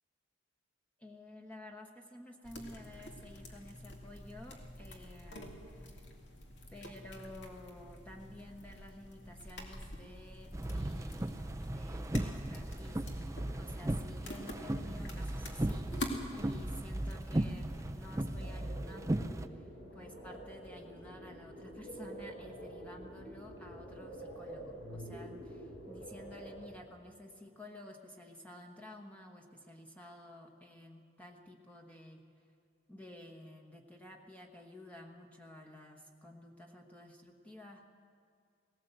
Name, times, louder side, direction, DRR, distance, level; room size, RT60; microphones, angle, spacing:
voice 1, 1.0-5.9 6.7-15.9 16.3-19.7 19.9-32.2 32.9-37.9, left 1 dB, 10° left, 1 dB, 1.2 m, -52 dB
sound 1, 2.4-18.2, left 1 dB, 65° left, 2.5 m, -47 dB
sound 2, 10.5-19.5, right 1 dB, 15° right, 0.5 m, -37 dB
sound 3, 18.4-26.7, right 1 dB, 80° left, 5.3 m, -48 dB
19.0 x 17.5 x 8.0 m, 2.2 s
head